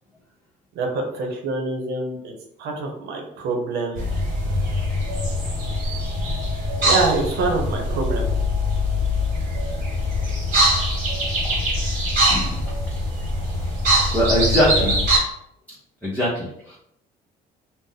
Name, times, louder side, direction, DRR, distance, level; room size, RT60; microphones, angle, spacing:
voice 1, 0.7-2.3 2.6-4.1 6.8-8.3 14.7-14.9, right 3 dB, 75° right, 3 dB, 0.8 m, -25 dB
sound 1, 4.0-15.2, equal, 50° right, 1.4 m, -22 dB
voice 2, 12.3-12.6 14.1-15.0 16.0-16.8, equal, 10° left, -8 dB, 0.9 m, -22 dB
2.5 x 2.1 x 3.9 m, 0.74 s
cardioid pair, 110°, 17 cm